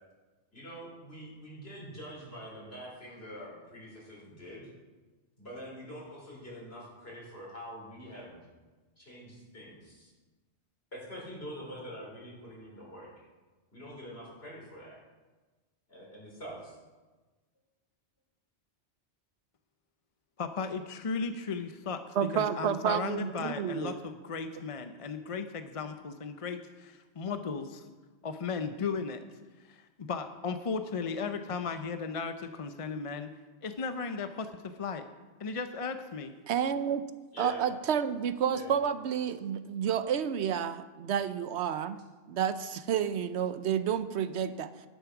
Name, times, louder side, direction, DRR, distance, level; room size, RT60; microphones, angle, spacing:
voice 1, 0.5-4.7 5.4-8.4 9.0-10.1 10.9-13.3 13.7-14.9 15.9-16.8 37.3-37.7 38.5-38.7, equal, 60° left, -4 dB, 4.7 m, -45 dB
voice 2, 20.4-27.8 28.2-29.2 29.7-33.3 33.6-34.5 34.8-35.0 35.4-36.3, left 5 dB, 40° left, 8 dB, 0.5 m, -36 dB
voice 3, 22.2-24.0 36.5-37.0 37.4-42.0 42.3-44.7, right 8 dB, 75° right, 12 dB, 0.9 m, -30 dB
11.0 x 9.3 x 6.0 m, 1.3 s
omnidirectional pair, 1.1 m